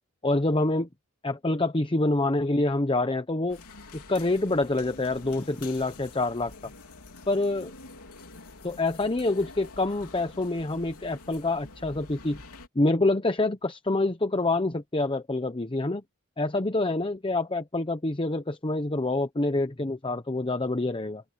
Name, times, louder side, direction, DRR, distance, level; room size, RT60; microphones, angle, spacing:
voice 1, 0.2-0.9 1.2-3.6 3.9-6.5 7.3-7.7 8.6-12.4 12.7-16.0 16.4-21.2, left 2 dB, 25° left, 0.8 m, -26 dB
sound 1, 3.5-12.7, left 3 dB, 90° left, 3.2 m, -47 dB
head